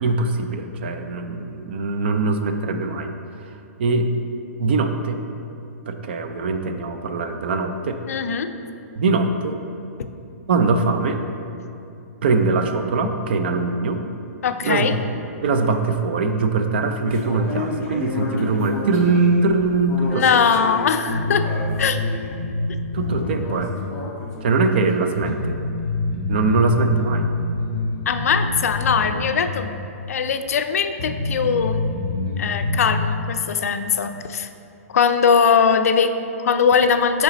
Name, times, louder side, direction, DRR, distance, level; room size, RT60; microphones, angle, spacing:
voice 1, 0.0-3.1 3.4-3.5 3.8-4.1 4.6-5.2 5.9-8.0 9.0-9.6 10.5-11.2 12.2-14.0 14.6-20.4 22.9-23.7 24.4-25.6 26.3-27.3, right 3 dB, 40° right, 6 dB, 0.4 m, -22 dB
voice 2, 8.1-8.5 14.4-14.9 20.1-21.5 21.8-22.0 28.1-29.7 30.1-31.8 32.4-34.5 34.9-37.2, left 6 dB, 70° left, 8 dB, 0.4 m, -20 dB
sound 1, 17.0-22.3 23.0-25.3, left 3 dB, 15° left, 0.6 m, -31 dB
sound 2, 21.1-23.7 24.0-24.1 24.7-24.8 25.2-29.5 29.7-29.8 30.5-30.6 31.0-33.0, left 2 dB, 30° left, 1.3 m, -26 dB
7.8 x 3.4 x 4.1 m, 2.7 s
hypercardioid pair, 175°, 8 cm